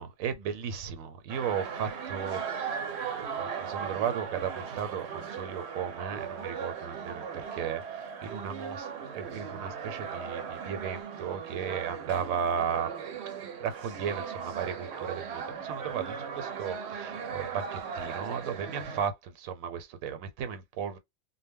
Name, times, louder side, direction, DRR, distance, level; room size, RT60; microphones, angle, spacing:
voice 1, 0.0-2.4 2.7-2.8 3.4-8.9 9.1-12.9 13.6-21.0, right 7 dB, 85° right, 1.0 m, -35 dB
sound 1, 1.3-19.1, right 6 dB, 60° right, 0.8 m, -38 dB
2.1 x 2.1 x 3.4 m
omnidirectional pair, 1.4 m